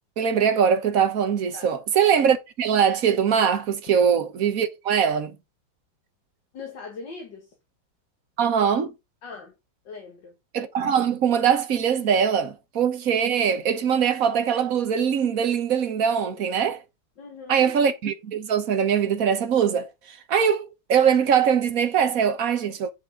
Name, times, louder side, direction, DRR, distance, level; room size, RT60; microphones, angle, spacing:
voice 1, 0.2-5.3 8.4-8.9 10.5-16.8 17.5-22.9, right 7 dB, 50° right, 1.3 m, -22 dB
voice 2, 6.5-7.5 9.2-9.5 9.8-10.4 16.2-16.5 17.2-17.7, left 4 dB, 65° left, 2.4 m, -40 dB
8.1 x 6.9 x 3.7 m
omnidirectional pair, 2.1 m